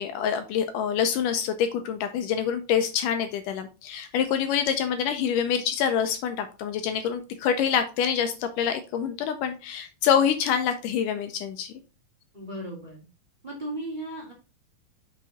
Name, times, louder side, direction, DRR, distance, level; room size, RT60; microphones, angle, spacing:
voice 1, 0.0-11.7, left 8 dB, 75° left, 7 dB, 2.1 m, -26 dB
voice 2, 12.3-13.1 13.4-14.3, right 1 dB, 20° right, -3 dB, 1.5 m, -36 dB
6.1 x 5.7 x 4.1 m, 0.30 s
omnidirectional pair, 4.1 m